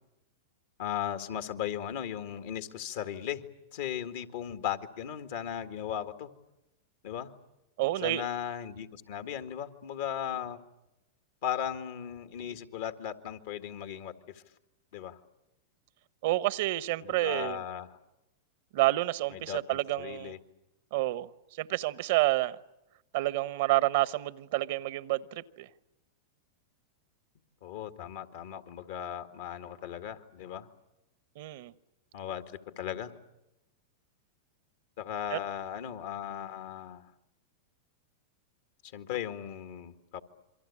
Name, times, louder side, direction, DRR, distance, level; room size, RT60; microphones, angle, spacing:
voice 1, 0.8-3.4 3.7-6.3 7.0-7.3 8.0-10.6 11.4-14.4 14.9-15.2 17.0-18.0 19.3-20.4 27.6-30.7 32.1-33.1 35.0-37.1 38.8-40.2, left 9 dB, 65° left, 1.9 m, -37 dB
voice 2, 7.8-8.3 16.2-17.6 18.7-20.3 20.9-22.6 23.1-25.7 31.4-31.7 35.3-35.4, right 18 dB, 65° right, 0.9 m, -29 dB
27.5 x 23.5 x 8.5 m
hypercardioid pair, 110°, 0 cm